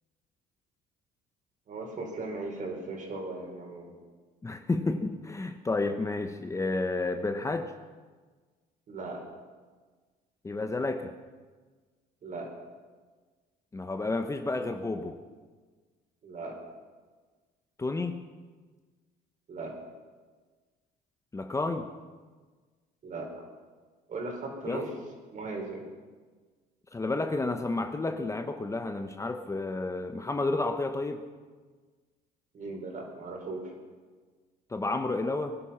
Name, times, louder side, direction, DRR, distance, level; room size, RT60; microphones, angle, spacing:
voice 1, 1.7-3.9 8.9-9.2 12.2-12.5 16.2-16.5 19.5-19.8 23.0-23.3 24.1-24.9 25.3-25.9 32.5-33.7, right 3 dB, 50° right, 1 dB, 4.8 m, -37 dB
voice 2, 4.4-7.7 10.4-11.1 13.7-15.2 17.8-18.3 21.3-21.9 24.7-24.8 26.9-31.2 34.7-35.6, left 2 dB, 20° left, 7 dB, 1.0 m, -31 dB
22.5 x 11.0 x 5.9 m, 1.4 s
cardioid pair, 110°, 17 cm